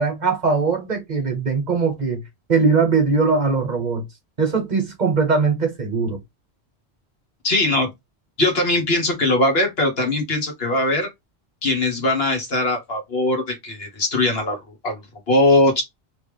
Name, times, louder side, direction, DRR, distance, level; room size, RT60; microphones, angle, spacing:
voice 1, 0.0-2.2 2.5-4.0 4.4-6.2, right 4 dB, 45° right, 1.1 m, -20 dB
voice 2, 7.4-7.9 8.4-11.1 11.6-15.0 15.3-15.8, left 2 dB, 65° left, 1.5 m, -20 dB
3.1 x 2.9 x 3.3 m
omnidirectional pair, 1.1 m